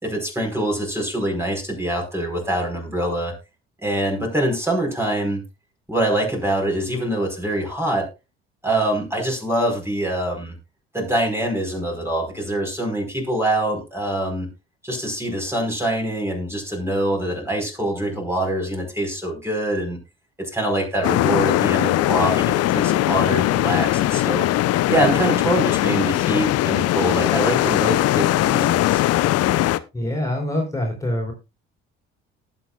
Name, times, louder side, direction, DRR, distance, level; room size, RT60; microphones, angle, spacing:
voice 1, 0.0-3.3 3.8-5.4 5.9-8.1 8.6-10.5 10.9-14.5 14.8-20.0 20.4-24.5 24.9-29.0, right 1 dB, 10° right, 1 dB, 4.8 m, -24 dB
sound 1, 21.0-29.8, left 15 dB, 50° left, 0.8 m, -20 dB
voice 2, 29.9-31.3, left 1 dB, 10° left, -1 dB, 4.3 m, -25 dB
19.0 x 7.3 x 2.4 m, 0.25 s
figure-of-eight pair, 50°, 32 cm